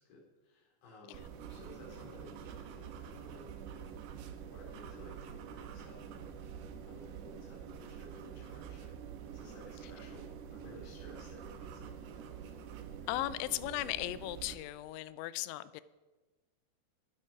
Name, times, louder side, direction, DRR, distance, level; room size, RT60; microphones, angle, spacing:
voice 1, 0.0-6.4 6.8-8.9 9.3-12.2, left 2 dB, 65° left, -2 dB, 5.3 m, -56 dB
sound 1, 1.1-14.6, right 8 dB, 75° right, 2.9 m, -47 dB
voice 2, 13.1-15.8, left 16 dB, 85° left, 16 dB, 2.9 m, -37 dB
21.0 x 7.7 x 5.7 m, 1.3 s
omnidirectional pair, 5.2 m